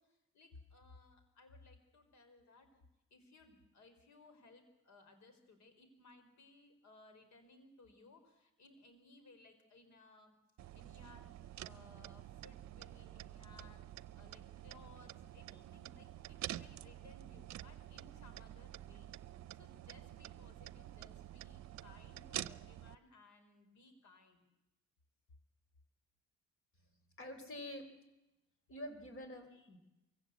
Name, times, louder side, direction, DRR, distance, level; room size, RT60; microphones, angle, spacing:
voice 1, 0.0-2.8 3.1-10.4 10.7-19.1 19.5-24.4, left 3 dB, 65° left, 8 dB, 4.4 m, -62 dB
sound 1, 10.6-22.9, right 13 dB, 65° right, 0.7 m, -49 dB
voice 2, 27.2-27.9 28.7-29.8, left 1 dB, 45° left, 8 dB, 4.2 m, -47 dB
23.5 x 16.0 x 8.3 m, 0.94 s
cardioid pair, 90°, 30 cm